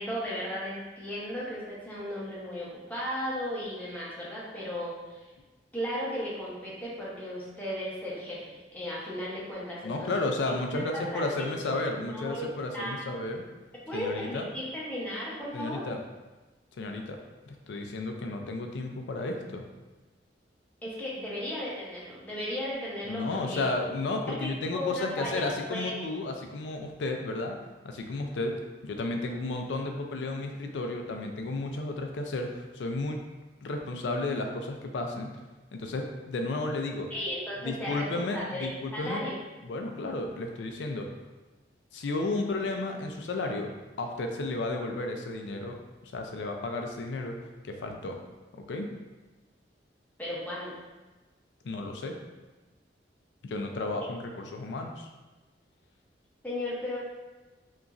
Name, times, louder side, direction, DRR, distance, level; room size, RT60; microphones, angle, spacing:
voice 1, 0.0-5.2 5.7-10.3 10.9-12.5 12.7-13.0 13.9-15.8 20.8-23.6 24.3-25.9 37.1-39.4 50.2-50.8 56.4-57.0, equal, 10° left, -7 dB, 0.7 m, -35 dB
voice 2, 9.8-13.5 13.9-14.5 15.5-16.0 16.7-17.2 17.5-19.6 23.1-27.6 27.8-33.2 33.6-35.3 35.7-37.1 37.6-39.2 39.6-41.1 41.9-43.7 44.0-45.8 46.0-47.4 47.6-48.2 48.5-48.9 51.6-52.2 53.4-55.1, left 2 dB, 80° left, 3 dB, 0.4 m, -33 dB
2.9 x 2.4 x 2.4 m, 1.2 s
head